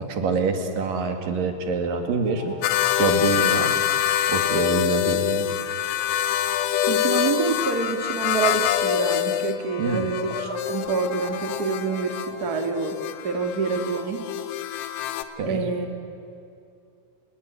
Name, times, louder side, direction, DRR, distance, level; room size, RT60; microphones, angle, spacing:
voice 1, 0.1-2.6 3.0-3.7 4.3-5.5 9.8-10.1 15.4-15.6, right 4 dB, 55° right, 5 dB, 3.4 m, -25 dB
sound 1, 2.0-4.3 5.8-7.8 10.0-14.0, left 4 dB, 35° left, 3.3 m, -42 dB
sound 2, 2.6-15.2, left 11 dB, 75° left, 3.4 m, -25 dB
voice 2, 6.9-12.9 13.2-14.2 15.4-15.9, right 4 dB, 80° right, 5 dB, 0.8 m, -27 dB
29.0 x 19.5 x 9.7 m, 2.6 s
omnidirectional pair, 5.6 m